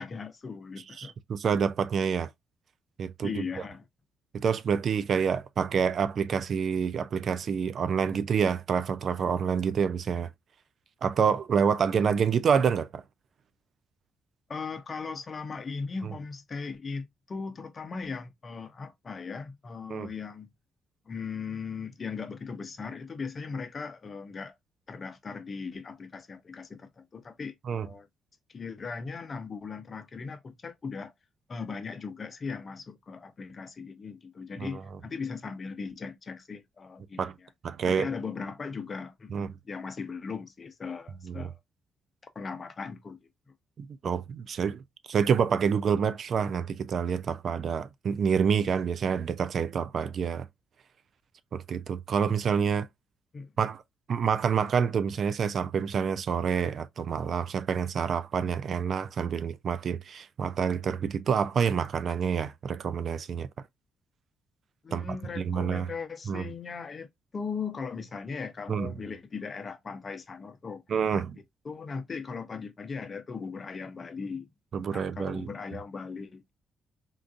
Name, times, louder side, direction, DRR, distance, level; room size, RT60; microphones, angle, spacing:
voice 1, 0.0-1.1 3.2-3.9 14.5-20.5 21.1-24.5 24.9-28.1 28.5-31.1 31.5-37.5 37.9-41.6 42.3-43.2 53.3-53.5 64.8-67.1 67.3-70.8 71.1-71.2 71.6-74.5 74.9-76.5, left 5 dB, 40° left, 0.7 m, -38 dB
voice 2, 1.0-2.3 3.0-3.4 4.3-10.3 11.0-13.0 19.9-20.1 27.7-27.9 34.6-34.7 37.2-37.3 37.6-38.1 39.3-39.5 41.3-41.5 43.8-44.8 45.1-50.5 51.5-52.9 53.6-53.8 54.1-63.5 64.9-65.0 65.4-65.9 66.3-66.5 68.7-68.9 70.9-71.4 74.7-75.5, right 6 dB, 55° right, 0.4 m, -27 dB
3.8 x 2.5 x 2.4 m
cardioid pair, 90°, 0 cm